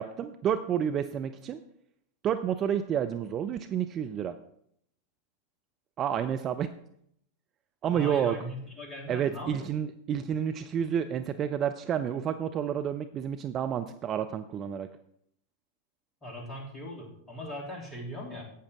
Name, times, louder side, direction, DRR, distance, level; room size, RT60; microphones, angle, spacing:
voice 1, 0.0-1.6 2.2-4.4 6.0-6.7 7.8-8.4 9.1-14.9, right 9 dB, 30° right, 9 dB, 0.5 m, -30 dB
voice 2, 7.9-9.7 10.1-10.2 16.2-18.4, equal, 15° left, 0 dB, 3.0 m, -39 dB
11.5 x 8.5 x 3.6 m, 0.69 s
figure-of-eight pair, 90°, 0 cm